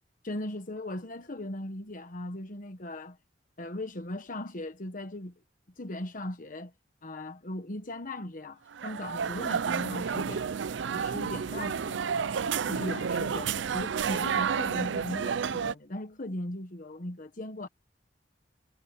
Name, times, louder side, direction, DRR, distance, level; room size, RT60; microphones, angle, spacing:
voice 1, 0.2-3.2 3.6-5.3 5.8-6.7 7.0-12.4 12.7-17.7, left 1 dB, 45° left, 1.3 m, -38 dB
sound 1, 8.7-15.7, right 6 dB, 70° right, 0.5 m, -30 dB
head